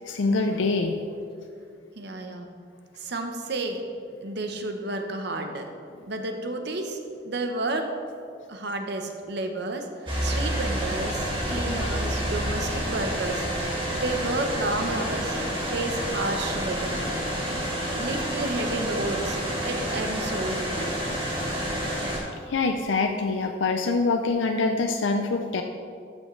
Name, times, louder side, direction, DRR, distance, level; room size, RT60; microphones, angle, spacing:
voice 1, 0.1-0.9 22.5-25.6, left 3 dB, 80° left, 4 dB, 0.5 m, -25 dB
voice 2, 2.0-2.5 3.0-3.8 4.2-5.7 6.1-7.9 8.5-13.7 14.0-17.0 17.9-19.4 19.6-20.9, right 2 dB, 60° right, 5 dB, 0.9 m, -31 dB
sound 1, 10.1-22.2, equal, 25° right, 2.0 m, -29 dB
13.0 x 6.2 x 3.2 m, 2.3 s
head